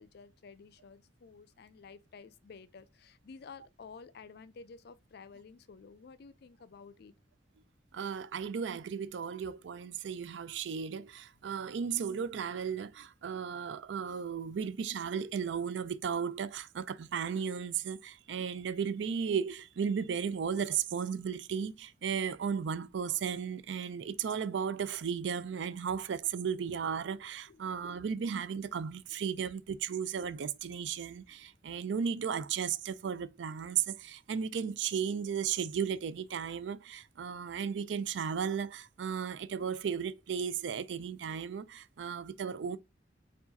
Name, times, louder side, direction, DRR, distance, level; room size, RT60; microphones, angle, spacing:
voice 1, 0.0-7.1 27.5-28.0, left 5 dB, 55° left, 0.4 m, -52 dB
voice 2, 7.9-42.8, right 7 dB, 65° right, 0.4 m, -35 dB
4.7 x 2.4 x 3.9 m
head